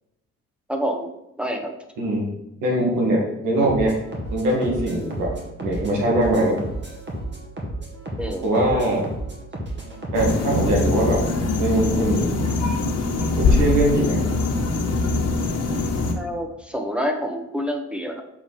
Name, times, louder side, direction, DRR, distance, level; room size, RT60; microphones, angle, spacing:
voice 1, 0.7-1.1 1.4-1.7 8.2-8.5 16.1-18.2, equal, 5° right, 4 dB, 1.1 m, -27 dB
voice 2, 2.0-2.4 2.6-4.0 4.3-5.3 5.6-6.6 8.4-9.1 10.1-11.2 11.6-12.3 13.4-14.3, right 1 dB, 85° right, -1 dB, 2.3 m, -21 dB
sound 1, 3.6-11.4, right 1 dB, 35° right, 2.2 m, -33 dB
sound 2, 10.1-16.1, left 3 dB, 55° left, 1.5 m, -22 dB
7.2 x 4.9 x 4.3 m, 0.88 s
cardioid pair, 90°, 30 cm